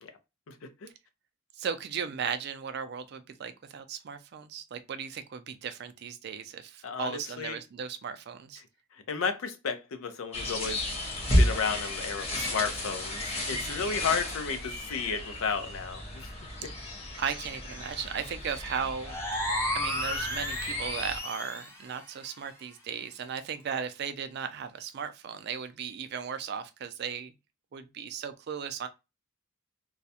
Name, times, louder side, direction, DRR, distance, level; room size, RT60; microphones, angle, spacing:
voice 1, 1.6-8.6 13.5-13.8 17.2-19.4 19.7-27.3 27.7-28.9, right 7 dB, 50° right, 0.3 m, -36 dB
voice 2, 6.8-7.6 9.1-10.8 11.4-16.3 16.6-16.7, left 5 dB, 85° left, 0.5 m, -33 dB
sound 1, 10.3-21.2, left 1 dB, 30° left, 0.9 m, -33 dB
sound 2, 19.0-21.8, left 1 dB, 10° left, 0.5 m, -32 dB
2.3 x 2.1 x 2.7 m
head